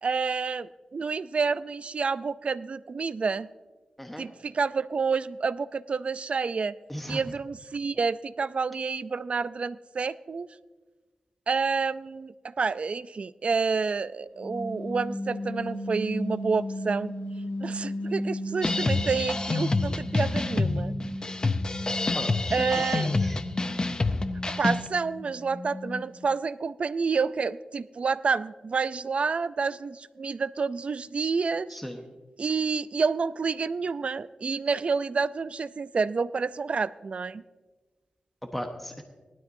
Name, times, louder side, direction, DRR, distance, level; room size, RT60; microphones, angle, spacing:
voice 1, 0.0-3.5 4.2-6.7 7.1-10.5 11.5-17.1 17.6-20.9 22.5-23.1 24.6-31.8 32.4-37.4, right 5 dB, 55° right, 16 dB, 0.4 m, -29 dB
voice 2, 6.9-7.2 22.1-23.4 31.7-32.0 38.4-39.0, equal, 5° left, 4 dB, 1.0 m, -36 dB
sound 1, 14.4-19.7 20.0-26.2, left 1 dB, 90° left, 1.4 m, -36 dB
sound 2, 18.6-24.9, left 3 dB, 30° left, 0.5 m, -27 dB
19.0 x 12.5 x 2.6 m, 1.3 s
wide cardioid pair, 100°, 3 cm